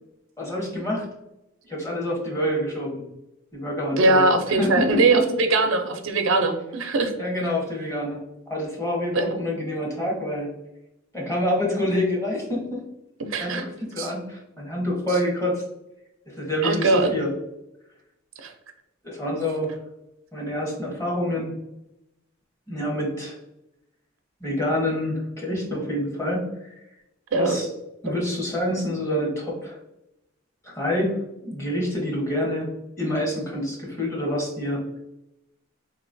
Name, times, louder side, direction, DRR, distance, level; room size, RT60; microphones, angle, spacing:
voice 1, 0.4-1.1 1.6-3.0 3.5-4.2 4.6-5.0 7.2-8.2 8.5-10.5 11.1-12.8 13.4-15.6 16.3-17.3 19.0-19.7 20.3-21.5 22.7-23.4 24.4-26.7 27.3-27.7 28.0-29.8 30.6-31.1 31.4-32.7 33.0-34.8, left 1 dB, 15° left, -3 dB, 1.0 m, -27 dB
voice 2, 4.0-7.1 9.1-9.3 13.2-13.6 14.0-14.1 16.6-17.1 18.4-18.5 27.3-27.6, right 3 dB, 80° right, 6 dB, 0.6 m, -21 dB
4.0 x 3.0 x 2.5 m, 0.89 s
head